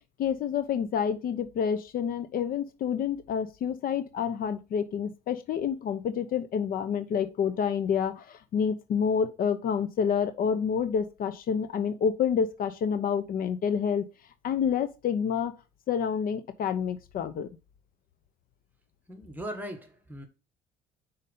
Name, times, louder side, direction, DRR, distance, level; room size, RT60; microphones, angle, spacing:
voice 1, 0.2-14.1 14.4-15.5 15.9-17.5, left 7 dB, 60° left, 0.8 m, -28 dB
voice 2, 19.1-20.3, equal, 10° right, 1.6 m, -39 dB
5.6 x 4.0 x 5.4 m
cardioid pair, 110°, 17 cm